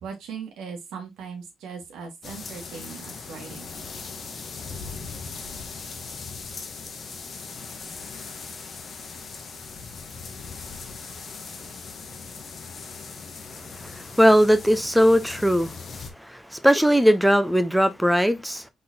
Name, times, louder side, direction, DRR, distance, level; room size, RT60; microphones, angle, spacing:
voice 1, 0.0-3.7, right 6 dB, 85° right, 1.4 m, -39 dB
sound 1, 2.2-16.1, left 5 dB, 45° left, 1.0 m, -39 dB
voice 2, 13.6-18.7, equal, 5° right, 0.6 m, -20 dB
4.1 x 3.8 x 2.7 m
cardioid pair, 90°, 0 cm